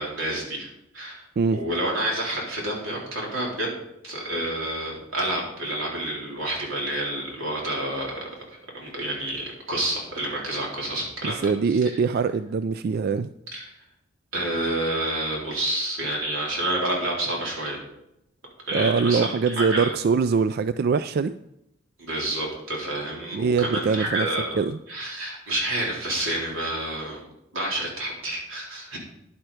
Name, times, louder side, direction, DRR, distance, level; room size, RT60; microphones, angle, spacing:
voice 1, 0.0-1.2 1.5-8.3 8.7-12.0 13.5-13.7 14.3-17.8 18.6-19.9 22.0-29.0, right 1 dB, 90° right, -2 dB, 3.8 m, -29 dB
voice 2, 11.2-13.3 18.7-21.4 23.3-24.3 24.5-24.8, right 5 dB, 50° right, 13 dB, 0.3 m, -23 dB
10.5 x 8.9 x 4.9 m, 0.82 s
head